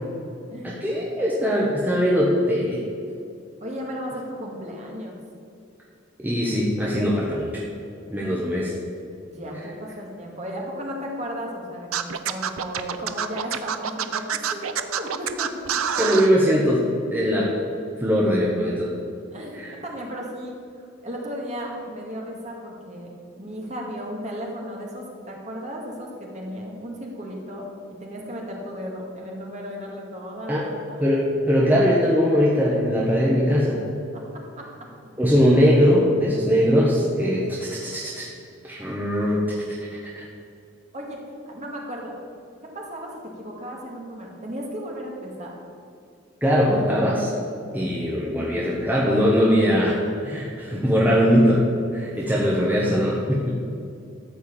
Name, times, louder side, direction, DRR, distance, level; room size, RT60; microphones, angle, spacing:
voice 1, 0.6-2.8 6.2-7.6 8.1-8.7 16.0-17.5 18.0-18.9 19.5-19.7 30.5-30.6 31.0-33.8 35.2-38.3 38.6-39.4 39.7-40.2 46.4-47.3 47.7-51.7 51.9-53.5, equal, 10° right, -5 dB, 1.2 m, -21 dB
voice 2, 3.6-5.2 9.3-15.9 19.3-23.1 23.4-27.7 28.0-31.0 34.1-34.2 40.9-41.2 41.5-42.2 42.7-45.5 52.1-52.3, equal, 35° right, -2 dB, 2.1 m, -35 dB
Scratching (performance technique), 11.9-16.3, right 8 dB, 90° right, 0.6 m, -26 dB
13.5 x 4.8 x 8.6 m, 2.5 s
head